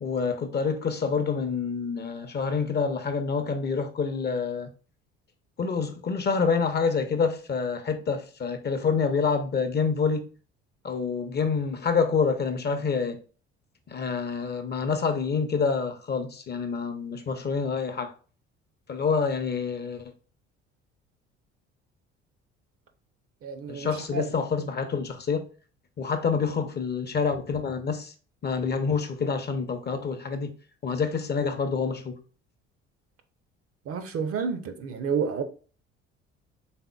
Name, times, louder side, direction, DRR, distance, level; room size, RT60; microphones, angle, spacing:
voice 1, 0.0-4.7 5.6-10.3 10.8-13.2 13.9-18.1 18.9-20.1 23.7-25.4 26.0-28.1 28.4-30.5 30.8-32.2, left 5 dB, 30° left, 0.7 m, -27 dB
voice 2, 23.4-24.2 33.9-35.4, right 6 dB, 40° right, 0.6 m, -30 dB
4.2 x 3.7 x 2.3 m
figure-of-eight pair, 55°, 34 cm